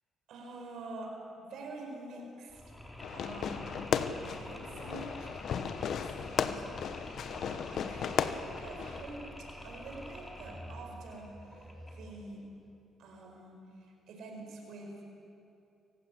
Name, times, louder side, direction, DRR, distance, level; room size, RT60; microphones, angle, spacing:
voice 1, 0.3-2.6 3.1-4.1 4.4-6.7 7.0-12.4 13.0-15.0, right 2 dB, 75° right, 1 dB, 5.4 m, -47 dB
Mechanisms, 2.5-12.3, left 1 dB, 10° left, 4.4 m, -47 dB
Fireworks, 3.0-9.0, left 7 dB, 65° left, 1.1 m, -35 dB
24.5 x 15.5 x 9.8 m, 2.6 s
cardioid pair, 90°, 0 cm